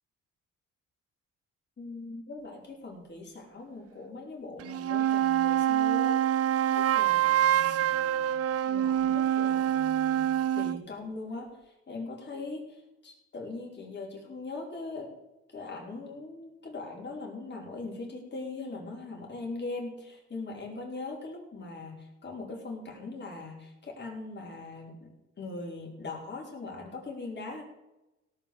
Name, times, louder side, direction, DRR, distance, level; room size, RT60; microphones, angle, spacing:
voice 1, 1.8-6.4 6.7-8.4 8.7-10.3 10.5-15.1 15.5-25.1 25.4-27.6, left 3 dB, 35° left, -1 dB, 5.0 m, -41 dB
sound 1, 4.6-10.8, right 10 dB, 50° right, 0.5 m, -26 dB
17.5 x 6.0 x 7.1 m, 0.96 s
cardioid pair, 90°, 30 cm